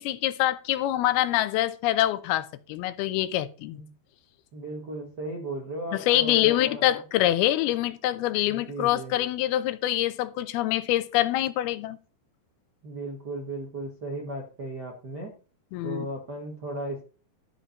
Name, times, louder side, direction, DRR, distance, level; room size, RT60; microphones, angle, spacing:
voice 1, 0.0-3.8 5.9-12.0 15.7-16.1, left 14 dB, 80° left, 2.5 m, -25 dB
voice 2, 4.5-6.8 8.5-9.2 12.8-15.3 15.8-17.0, right 2 dB, 55° right, 1.1 m, -36 dB
12.0 x 5.0 x 6.4 m
omnidirectional pair, 4.6 m